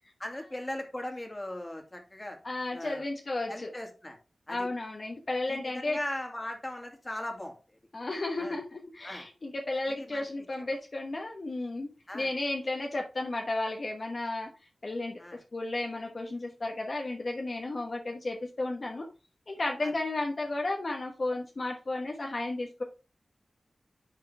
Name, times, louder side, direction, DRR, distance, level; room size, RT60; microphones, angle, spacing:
voice 1, 0.2-2.4 2.7-3.1 3.5-4.2 4.5-4.7 5.5-7.6 8.4-8.6 9.0-9.3 10.0-10.3 12.1-12.3 15.2-15.4, left 1 dB, 25° left, 3 dB, 2.2 m, -38 dB
voice 2, 2.4-3.7 4.5-6.0 7.9-11.9 12.1-14.5 14.8-15.2 15.5-19.1 19.5-22.8, left 2 dB, 55° left, 1 dB, 1.2 m, -33 dB
10.5 x 3.8 x 3.4 m, 0.33 s
wide cardioid pair, 60°, 0 cm